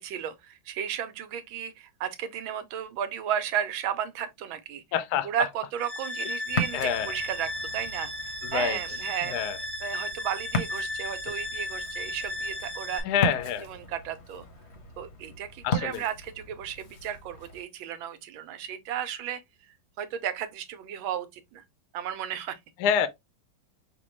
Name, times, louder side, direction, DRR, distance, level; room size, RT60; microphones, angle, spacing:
voice 1, 0.0-4.8 5.2-8.1 8.5-9.4 9.8-13.0 13.6-14.4 15.0-19.4 20.0-21.6 21.9-22.6, right 9 dB, 85° right, 1.5 m, -34 dB
voice 2, 4.9-5.3 6.7-7.1 8.4-8.8 9.3-9.6 13.0-13.7 15.6-16.0 22.8-23.1, left 8 dB, 70° left, 1.0 m, -27 dB
sound 1, 5.8-13.0, left 1 dB, 10° right, 0.8 m, -35 dB
Ocean, 6.5-17.6, left 2 dB, 50° left, 0.9 m, -37 dB
5.9 x 2.2 x 3.1 m
omnidirectional pair, 2.1 m